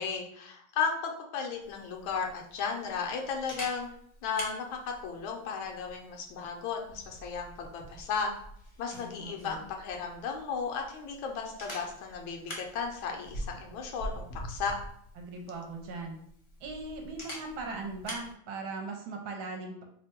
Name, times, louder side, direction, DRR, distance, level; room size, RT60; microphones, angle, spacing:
voice 1, 0.0-3.9 4.2-8.3 8.8-14.8, left 5 dB, 75° left, 2 dB, 1.3 m, -35 dB
Camera, 1.6-18.3, equal, 45° left, 0.8 m, -45 dB
voice 2, 8.9-9.6 15.2-16.2 16.6-19.8, right 3 dB, 75° right, 3 dB, 1.3 m, -39 dB
3.3 x 2.1 x 4.2 m, 0.71 s
omnidirectional pair, 2.3 m